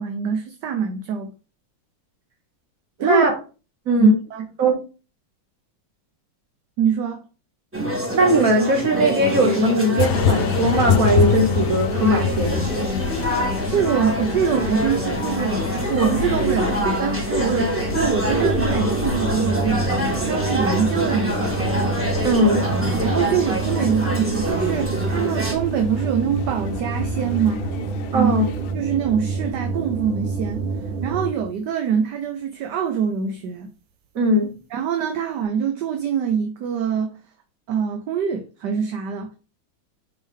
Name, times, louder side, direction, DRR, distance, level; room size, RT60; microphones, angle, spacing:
voice 1, 0.0-1.3 3.0-3.3 4.0-4.5 6.8-7.2 13.7-21.6 23.0-27.7 28.1-28.4 28.7-30.6 31.0-33.7 34.7-37.2 37.7-39.4, right 7 dB, 65° right, 1.3 m, -24 dB
voice 2, 3.0-3.4 3.9-4.1 4.6-4.8 8.1-12.6 22.2-22.7 28.1-28.5 34.2-34.5, right 1 dB, 45° right, 2.2 m, -19 dB
sound 1, 7.7-25.5, right 1 dB, 10° right, 1.1 m, -25 dB
sound 2, 10.0-28.7, left 7 dB, 85° left, 1.4 m, -28 dB
sound 3, 17.9-31.6, right 4 dB, 80° right, 1.7 m, -28 dB
5.5 x 4.9 x 3.5 m
omnidirectional pair, 2.2 m